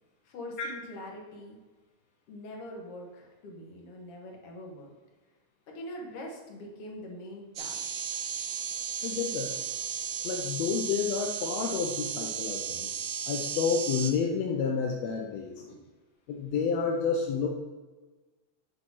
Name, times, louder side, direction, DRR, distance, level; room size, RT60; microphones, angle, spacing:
voice 1, 0.2-1.6 2.3-4.9 5.7-8.0 15.6-15.9, left 1 dB, 55° left, 0 dB, 2.2 m, -43 dB
sound 1, 7.6-14.1, right 8 dB, 75° right, 1.5 m, -35 dB
voice 2, 9.0-9.5 10.2-12.9 13.2-15.6 16.3-17.5, left 6 dB, 75° left, 1 dB, 1.6 m, -30 dB
8.0 x 4.2 x 6.1 m, 1.3 s
omnidirectional pair, 3.6 m